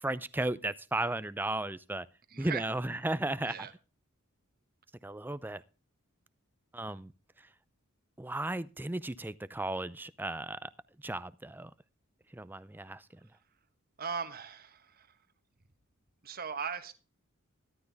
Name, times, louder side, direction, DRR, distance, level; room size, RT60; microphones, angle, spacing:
voice 1, 0.0-2.1 2.4-3.7 5.0-5.6 6.7-7.1 8.2-10.7 11.0-11.7 12.3-13.0, right 2 dB, 10° right, 0.5 m, -35 dB
voice 2, 2.3-2.6 3.5-3.7 14.0-15.1 16.2-16.9, right 6 dB, 45° right, 1.3 m, -38 dB
13.5 x 12.0 x 3.4 m
head